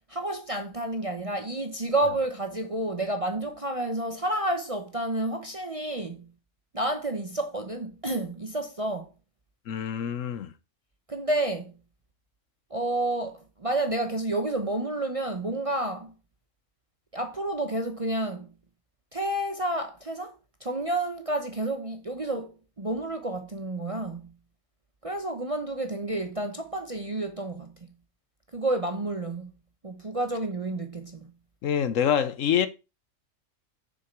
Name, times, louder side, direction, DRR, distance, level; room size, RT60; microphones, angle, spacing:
voice 1, 0.1-6.2 6.7-9.1 11.1-11.7 12.7-16.1 17.1-18.5 19.1-20.3 20.6-24.3 25.0-27.7 28.5-29.5 29.8-31.2, right 1 dB, 30° right, 0.7 m, -30 dB
voice 2, 9.7-10.5 31.6-32.7, left 9 dB, 65° left, 1.0 m, -26 dB
6.7 x 6.6 x 4.5 m
omnidirectional pair, 1.5 m